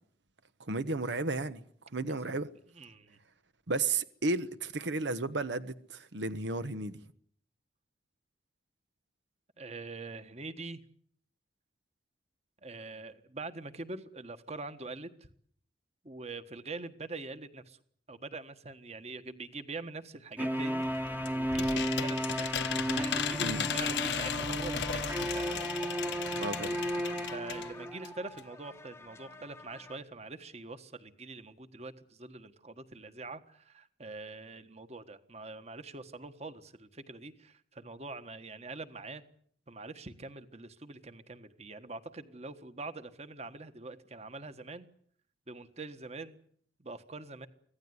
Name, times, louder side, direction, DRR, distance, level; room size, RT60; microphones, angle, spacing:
voice 1, 0.7-1.6 1.9-2.5 3.7-7.0 23.4-23.7 26.4-26.7, right 3 dB, 90° right, 1.1 m, -33 dB
voice 2, 2.7-3.2 9.6-10.8 12.6-15.1 16.0-17.8 18.1-20.8 21.3-22.6 22.9-25.7 27.3-39.2 39.7-44.9 45.5-46.4 46.8-47.5, right 3 dB, 40° right, 1.5 m, -44 dB
sound 1, 20.4-30.0, left 3 dB, 15° left, 1.1 m, -50 dB
sound 2, 20.4-28.1, equal, 10° right, 1.0 m, -34 dB
sound 3, 20.8-27.7 28.0-28.1 28.4-28.5, left 8 dB, 80° left, 1.1 m, -36 dB
25.0 x 16.5 x 9.6 m
head